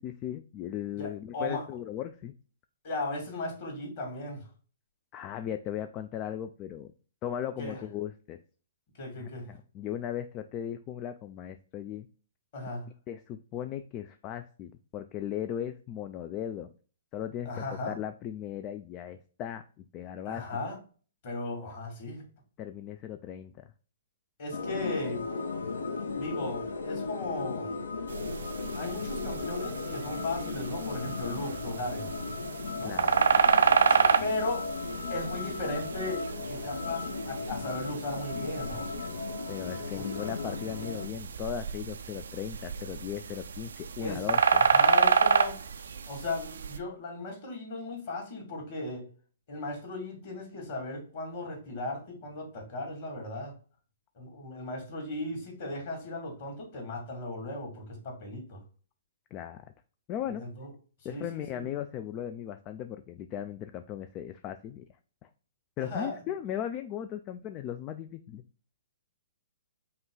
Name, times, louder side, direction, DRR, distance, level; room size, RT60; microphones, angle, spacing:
voice 1, 0.0-2.3 5.1-6.9 7.2-8.4 9.2-12.1 13.1-16.7 17.1-20.4 22.6-23.7 32.8-33.2 39.5-44.7 59.3-59.7 60.1-60.4 61.0-64.9 65.2-65.3 65.8-68.4, left 10 dB, 30° left, 9 dB, 0.3 m, -37 dB
voice 2, 1.0-1.6 2.8-4.5 7.6-7.8 9.0-9.5 12.5-12.9 17.4-18.0 20.2-20.8 21.2-22.3 24.4-25.3 26.2-27.7 28.7-32.1 32.8-32.9 33.9-34.7 35.1-38.9 40.0-40.1 44.0-44.3 44.6-45.6 46.1-49.1 49.5-53.5 54.2-58.6 60.4-60.7 61.0-61.7 65.8-66.2, left 2 dB, 50° left, 1 dB, 2.3 m, -36 dB
sound 1, 24.5-41.1, left 4 dB, 75° left, 0.6 m, -36 dB
sound 2, 28.1-46.8, right 5 dB, 70° right, 0.4 m, -29 dB
5.4 x 2.3 x 3.7 m, 0.39 s
hypercardioid pair, 125°, 0 cm